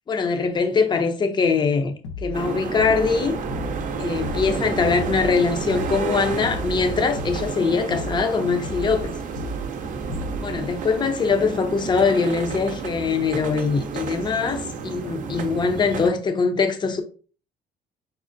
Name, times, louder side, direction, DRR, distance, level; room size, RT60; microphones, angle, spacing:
voice 1, 0.1-3.4 4.0-9.2 10.4-17.0, left 5 dB, 25° left, 0.6 m, -22 dB
sound 1, 2.0-2.4 2.8-3.2 3.5-3.9 4.2-4.6 5.0-5.3 5.7-6.1 6.4-6.8 7.2-7.5 7.9-8.3 8.6-9.0 9.4-9.7 10.1-10.5, left 1 dB, 90° left, 0.7 m, -34 dB
sound 2, 2.3-16.1, right 5 dB, 50° right, 0.5 m, -31 dB
5.4 x 2.1 x 2.5 m
cardioid pair, 110°, 17 cm